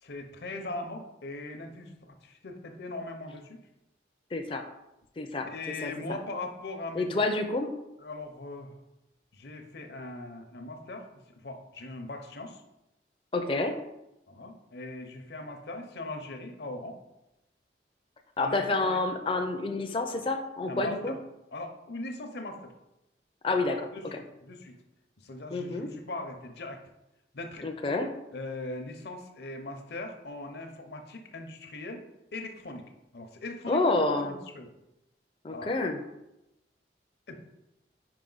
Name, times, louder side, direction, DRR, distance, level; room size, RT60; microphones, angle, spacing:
voice 1, 0.0-3.6 5.5-7.2 8.0-8.8 9.3-11.1 11.4-12.6 14.3-17.0 18.4-19.0 20.7-21.2 21.5-22.7 23.9-24.8 25.2-26.8 27.3-27.7 28.3-32.0 32.3-34.7 35.5-35.7 37.3-37.4, left 2 dB, 65° left, 5 dB, 0.7 m, -40 dB
voice 2, 4.3-4.6 5.2-5.5 5.8-6.2 7.0-7.7 13.3-13.7 18.4-21.1 23.4-23.9 25.5-25.9 27.6-28.1 33.7-34.3 35.4-36.0, left 2 dB, 30° left, 5 dB, 0.4 m, -28 dB
5.0 x 4.9 x 4.0 m, 0.91 s
head